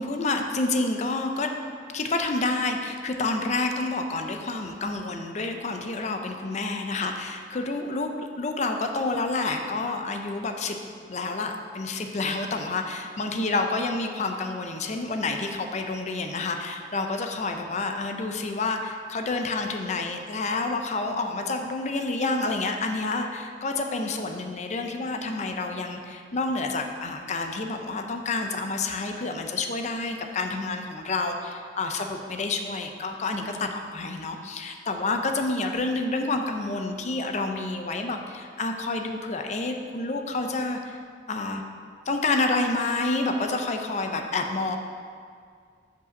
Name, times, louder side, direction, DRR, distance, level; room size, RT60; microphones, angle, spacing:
voice 1, 0.0-1.5 1.9-8.1 8.4-10.8 11.1-41.0 41.3-41.6 42.1-44.8, left 3 dB, 40° left, 4 dB, 0.5 m, -29 dB
5.5 x 4.9 x 6.3 m, 2.1 s
head